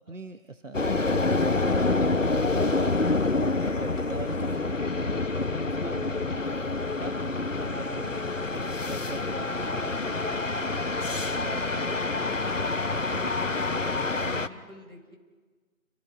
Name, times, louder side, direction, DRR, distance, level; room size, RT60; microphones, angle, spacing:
voice 1, 0.0-3.2 3.6-6.5 7.0-12.4 12.9-14.4, right 3 dB, 60° right, 9 dB, 1.0 m, -43 dB
sound 1, 0.7-14.5, left 3 dB, 60° left, 1.0 m, -27 dB
voice 2, 7.5-7.8 14.1-15.2, left 1 dB, 85° right, 5 dB, 4.9 m, -48 dB
29.5 x 25.0 x 5.1 m, 1.5 s
figure-of-eight pair, 175°, 43 cm